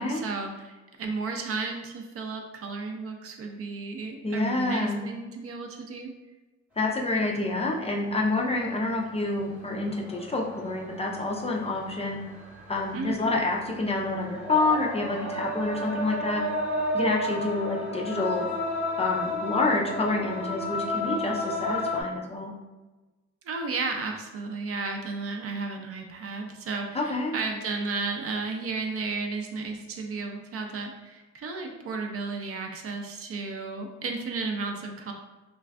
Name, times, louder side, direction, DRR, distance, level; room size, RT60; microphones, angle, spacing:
voice 1, 0.0-6.1 12.9-13.4 23.4-35.1, right 4 dB, 50° right, 3 dB, 0.5 m, -33 dB
voice 2, 4.2-5.0 6.8-12.2 12.7-16.4 16.9-18.5 19.0-22.5 26.9-27.4, left 2 dB, 20° left, -2 dB, 0.4 m, -28 dB
sound 1, 7.5-7.6 8.5-8.7 9.1-22.0, left 1 dB, 5° right, 0.8 m, -33 dB
2.4 x 2.3 x 3.3 m, 1.2 s
cardioid pair, 90°, 30 cm